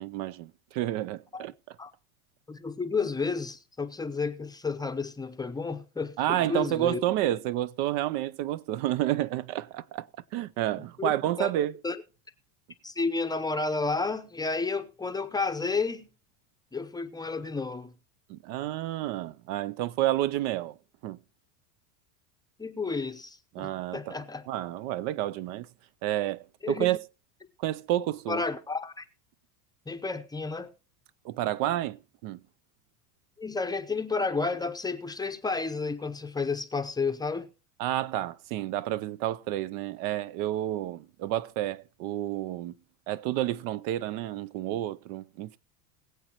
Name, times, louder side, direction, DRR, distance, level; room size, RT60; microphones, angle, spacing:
voice 1, 0.0-1.8 6.2-10.1 10.3-11.7 18.3-20.8 21.0-21.2 23.5-24.1 24.5-25.7 26.0-27.0 27.6-28.4 31.2-32.0 32.2-32.4 37.8-42.7 43.1-45.6, right 14 dB, 50° right, 0.5 m, -30 dB
voice 2, 2.5-7.0 11.0-11.5 11.8-12.0 12.8-16.1 16.7-17.9 22.6-24.4 26.6-26.9 28.3-29.0 29.9-30.7 33.4-37.5, left 4 dB, 10° left, 0.7 m, -31 dB
21.5 x 7.9 x 2.9 m
supercardioid pair, 130°, 45 cm